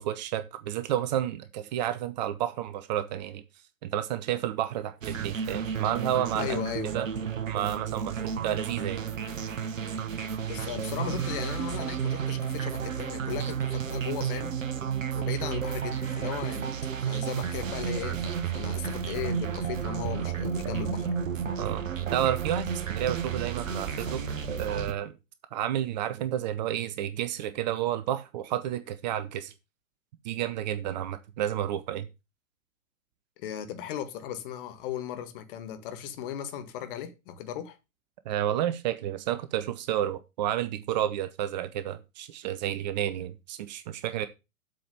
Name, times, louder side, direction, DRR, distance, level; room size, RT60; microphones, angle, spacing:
voice 1, 0.0-3.4 3.8-6.6 6.8-7.1 7.5-9.0 21.6-21.8 22.1-24.2 24.6-25.1 25.5-29.5 30.2-32.1 38.3-44.3, right 11 dB, 30° right, 0.7 m, -31 dB
sound 1, 5.0-24.9, right 7 dB, 65° right, 1.1 m, -32 dB
voice 2, 6.4-6.9 10.5-14.5 15.1-21.1 33.4-37.7, left 10 dB, 40° left, 1.6 m, -37 dB
sound 2, 10.6-19.3, equal, 90° left, 3.7 m, -54 dB
7.7 x 4.9 x 6.8 m
figure-of-eight pair, 110°, 42 cm